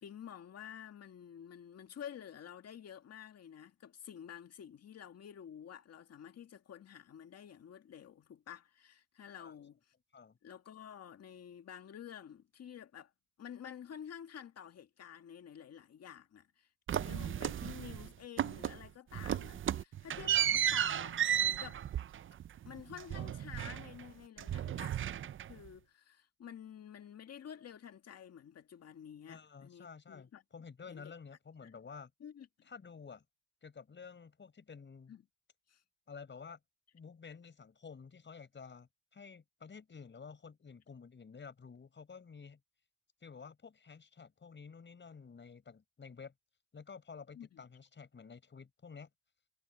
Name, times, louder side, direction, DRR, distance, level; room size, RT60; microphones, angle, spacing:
voice 1, 0.0-9.8 10.4-13.1 13.4-21.8 22.7-30.4 30.9-31.1 31.6-31.7 32.2-32.7 35.1-35.3 35.7-35.8 47.3-47.6, left 9 dB, 55° left, 2.0 m, -50 dB
sound 1, 16.9-18.1 18.4-18.9 19.1-24.1 24.4-25.7, right 10 dB, 40° right, 0.5 m, -34 dB
voice 2, 29.3-32.1 32.7-33.2 33.6-35.1 36.1-36.6 36.9-42.6 43.2-46.3 46.7-49.1, left 5 dB, 40° left, 5.6 m, -51 dB
cardioid pair, 90°, 30 cm